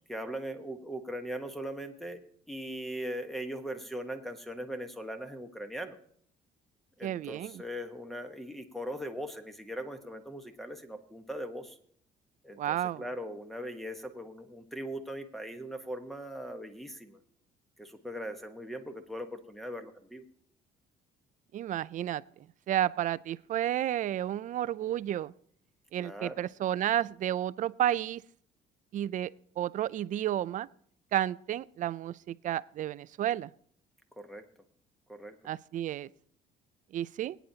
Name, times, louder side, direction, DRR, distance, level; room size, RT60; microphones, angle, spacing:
voice 1, 0.0-2.2 2.5-6.0 7.0-11.8 12.4-17.2 17.8-20.2 26.0-26.4 34.2-34.4 35.1-35.4, equal, ahead, 7 dB, 1.2 m, -40 dB
voice 2, 7.0-7.6 12.6-13.0 21.5-25.3 25.9-28.2 28.9-30.7 31.1-33.5 35.4-36.1 36.9-37.4, right 12 dB, 50° right, 18 dB, 0.4 m, -32 dB
23.0 x 9.2 x 2.8 m, 0.63 s
cardioid pair, 110°, 17 cm